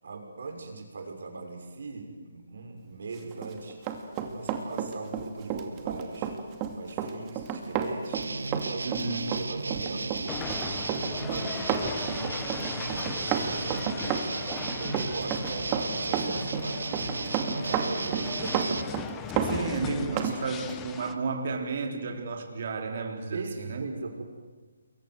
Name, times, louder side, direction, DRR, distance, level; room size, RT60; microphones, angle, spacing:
voice 1, 0.0-3.8 4.2-6.3 6.7-8.2 8.5-10.2 10.7-12.4 12.7-19.1 23.3-24.2, right 3 dB, 65° right, 4 dB, 6.4 m, -40 dB
Run, 3.3-20.4 20.7-20.8, right 8 dB, 25° right, 2.6 m, -32 dB
sound 1, 8.1-18.8, right 3 dB, 90° right, 1.9 m, -34 dB
voice 2, 8.8-9.2 19.4-23.8, right 4 dB, 50° right, 3 dB, 3.6 m, -32 dB
sound 2, 10.3-21.1, left 9 dB, 15° left, 1.0 m, -39 dB
28.5 x 23.0 x 8.0 m, 1.3 s
hypercardioid pair, 155°, 0 cm